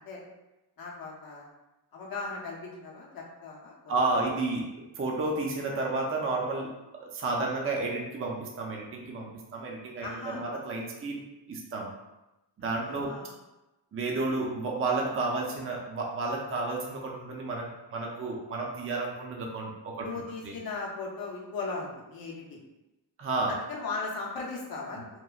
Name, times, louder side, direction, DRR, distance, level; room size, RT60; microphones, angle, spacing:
voice 1, 0.8-1.5 1.9-4.2 10.0-10.4 12.6-13.3 20.0-22.6 23.5-25.2, left 3 dB, 50° left, -2 dB, 0.6 m, -38 dB
voice 2, 3.9-4.7 5.0-6.7 7.0-11.2 11.5-11.9 12.6-13.1 13.9-20.6 23.2-23.6 25.0-25.2, right 3 dB, 30° right, -1 dB, 0.4 m, -31 dB
3.0 x 2.1 x 2.3 m, 1.0 s
wide cardioid pair, 100°, 44 cm